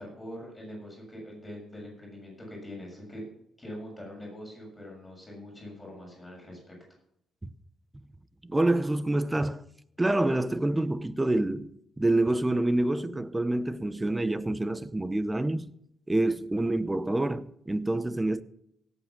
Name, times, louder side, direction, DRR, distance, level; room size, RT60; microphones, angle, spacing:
voice 1, 0.0-3.2 3.6-6.8, left 1 dB, 15° left, 7.0 m, -43 dB
voice 2, 8.4-9.6 10.0-11.7 12.0-15.7 16.1-18.4, right 2 dB, 15° right, 0.7 m, -27 dB
17.0 x 8.3 x 5.9 m
cardioid pair, 90°, 0 cm